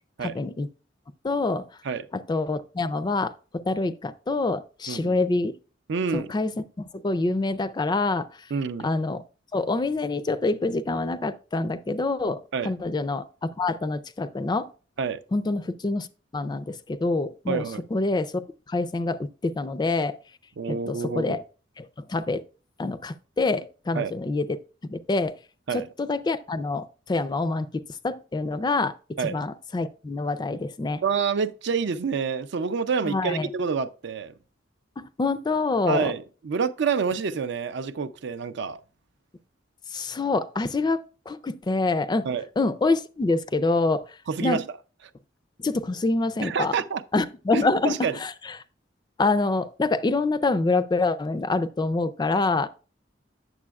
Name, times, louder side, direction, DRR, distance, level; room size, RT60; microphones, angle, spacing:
voice 1, 0.2-0.7 1.2-1.6 2.1-5.6 6.1-6.5 6.8-8.5 8.8-9.2 9.5-14.7 15.3-16.1 16.3-17.6 17.9-20.2 20.7-21.4 21.8-22.4 22.8-24.6 24.9-25.3 25.7-29.0 29.2-31.0 33.0-33.5 35.0-36.1 39.9-42.3 42.6-44.6 45.6-46.8 47.1-48.6 49.2-52.7, left 3 dB, 20° left, 0.3 m, -26 dB
voice 2, 5.9-6.3 8.5-8.9 12.5-12.7 15.0-15.2 17.5-17.8 20.6-21.4 23.9-24.1 25.7-25.9 29.2-29.4 31.0-34.3 35.9-38.8 42.3-42.4 44.3-44.6 46.4-47.0 47.5-48.1, right 5 dB, 65° right, 0.4 m, -27 dB
8.5 x 6.8 x 2.3 m
head